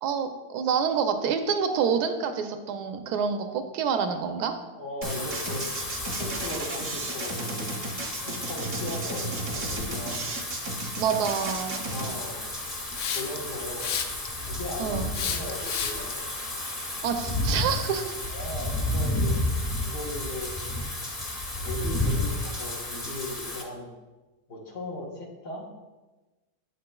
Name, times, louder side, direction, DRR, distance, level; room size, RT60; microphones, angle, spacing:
voice 1, 0.0-4.5 11.0-11.8 14.8-15.1 17.0-18.2, right 6 dB, 75° right, 7 dB, 1.1 m, -27 dB
voice 2, 4.8-5.6 6.2-7.7 8.2-10.3 11.9-12.5 13.1-13.9 14.4-16.2 18.3-19.4 19.9-20.5 21.6-23.9 24.5-25.7, left 2 dB, 90° left, -2 dB, 1.9 m, -37 dB
Wind / Rain, 5.0-23.6, left 1 dB, 30° left, 0.7 m, -32 dB
sound 1, 5.0-12.1, right 2 dB, 50° right, 0.6 m, -34 dB
Hiss, 12.9-13.4 13.8-14.4 15.1-16.1, left 7 dB, 65° left, 0.9 m, -30 dB
8.1 x 6.6 x 2.2 m, 1.2 s
omnidirectional pair, 1.7 m